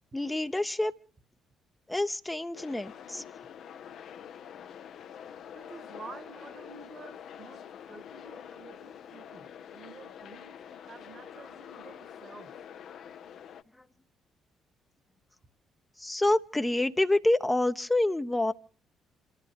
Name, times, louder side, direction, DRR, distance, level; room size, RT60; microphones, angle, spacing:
voice 1, 0.1-0.9 1.9-3.2 16.0-18.5, left 1 dB, 15° left, 0.8 m, -27 dB
sound 1, 2.5-13.6, left 8 dB, 60° left, 0.8 m, -46 dB
voice 2, 5.5-10.6 10.9-12.5, right 4 dB, 40° right, 1.7 m, -50 dB
28.0 x 13.5 x 3.7 m
figure-of-eight pair, 45°, 0 cm